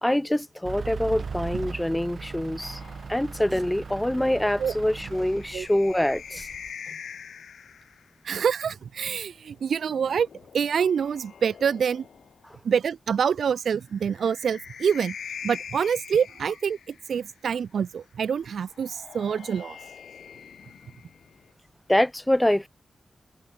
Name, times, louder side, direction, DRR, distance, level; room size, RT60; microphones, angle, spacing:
voice 1, 0.0-2.8 3.1-6.5 21.9-22.7, left 1 dB, 5° left, 0.5 m, -25 dB
Truck / Idling, 0.6-6.7, right 5 dB, 45° right, 1.3 m, -38 dB
sound 1, 2.6-8.1 9.5-12.5 13.8-17.3 18.6-21.5, left 7 dB, 90° left, 3.4 m, -44 dB
voice 2, 8.2-10.3 10.5-12.1 12.6-15.1 15.4-19.8, right 7 dB, 80° right, 0.4 m, -26 dB
wide cardioid pair, 170°, 0 cm